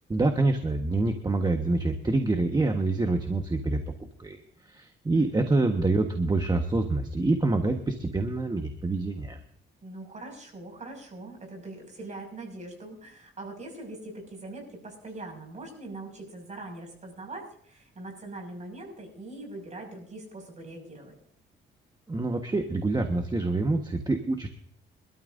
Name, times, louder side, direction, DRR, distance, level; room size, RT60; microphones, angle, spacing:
voice 1, 0.1-3.8 4.2-4.4 4.6-9.4 22.1-24.5, right 2 dB, 20° right, 4 dB, 1.4 m, -26 dB
voice 2, 5.1-5.7 9.8-21.2, right 2 dB, 35° right, 3 dB, 6.2 m, -42 dB
25.0 x 13.0 x 2.7 m, 0.63 s
cardioid pair, 90°, 20 cm